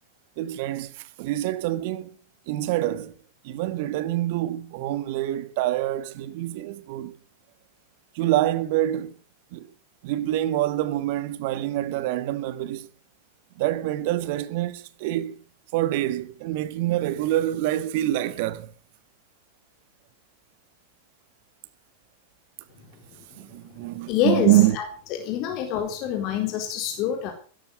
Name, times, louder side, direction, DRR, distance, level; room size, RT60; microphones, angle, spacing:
voice 1, 0.4-2.2 2.5-3.1 3.4-7.2 8.1-9.2 9.5-9.7 10.0-12.9 13.6-15.4 15.7-18.7 23.4-24.8, right 14 dB, 50° right, 1.6 m, -26 dB
voice 2, 24.1-24.9 25.2-27.3, left 9 dB, 40° left, 4.0 m, -26 dB
16.5 x 13.0 x 6.5 m
figure-of-eight pair, 90°, 0 cm